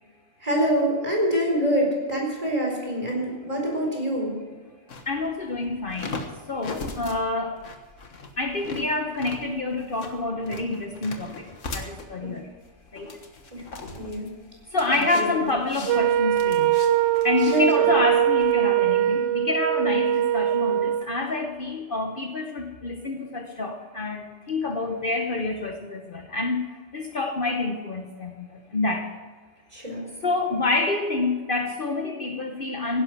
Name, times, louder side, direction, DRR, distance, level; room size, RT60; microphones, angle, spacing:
voice 1, 0.4-4.3 12.2-12.3 13.5-13.6 14.0-14.3 14.9-15.5 17.4-17.9 29.7-30.1, right 1 dB, 30° right, -1 dB, 4.6 m, -25 dB
sound 1, 4.9-18.5, left 3 dB, 90° left, 1.8 m, -40 dB
voice 2, 5.1-6.2 6.5-7.6 8.4-12.5 12.9-13.1 13.6-13.7 14.7-16.8 17.2-29.1 30.2-33.0, left 2 dB, 45° left, 4 dB, 1.2 m, -27 dB
Wind instrument woodwind instrument, 15.9-21.1, right 11 dB, 70° right, 0.9 m, -22 dB
16.5 x 11.0 x 6.1 m, 1.4 s
omnidirectional pair, 1.2 m